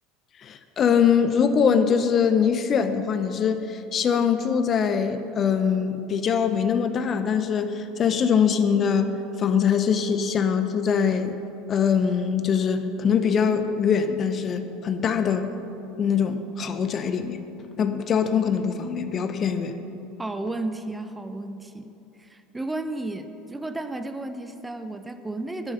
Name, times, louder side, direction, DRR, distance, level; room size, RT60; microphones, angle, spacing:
voice 1, 0.4-11.4 11.7-15.5 16.0-17.4 17.8-19.7, left 7 dB, 40° left, 10 dB, 0.7 m, -23 dB
voice 2, 20.2-25.7, right 2 dB, 15° right, 9 dB, 0.7 m, -33 dB
10.0 x 10.0 x 5.7 m, 2.9 s
hypercardioid pair, 75°, 0 cm